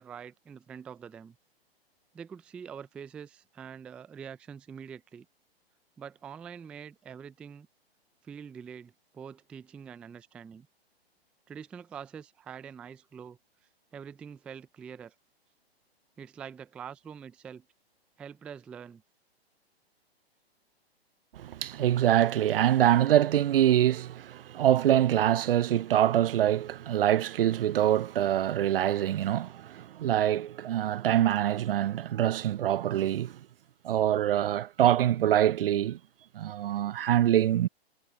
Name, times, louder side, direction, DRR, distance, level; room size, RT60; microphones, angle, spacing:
voice 1, 0.0-1.4 2.1-5.3 6.0-7.7 8.2-10.7 11.5-13.4 13.9-15.1 16.2-17.7 18.2-19.0, right 7 dB, 5° right, 0.3 m, -45 dB
voice 2, 21.3-33.4 33.8-36.0 36.3-37.7, right 11 dB, 60° right, 0.5 m, -25 dB
hypercardioid pair, 125°, 32 cm